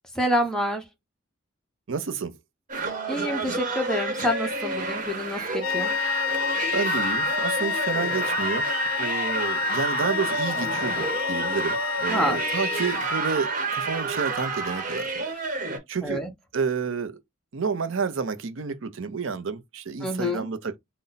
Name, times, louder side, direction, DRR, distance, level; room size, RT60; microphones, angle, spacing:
voice 1, 0.2-0.8 3.1-5.9 12.1-12.4 16.0-16.3 20.0-20.4, equal, 5° left, 0.9 m, -27 dB
voice 2, 1.9-2.3 6.7-8.7 9.0-15.6 15.9-16.2 16.5-17.2 17.5-20.8, right 5 dB, 80° right, 0.6 m, -30 dB
sound 1, 2.7-15.8, right 3 dB, 40° right, 1.1 m, -29 dB
sound 2, 5.6-13.5, left 8 dB, 75° left, 0.4 m, -29 dB
4.0 x 2.1 x 3.9 m
head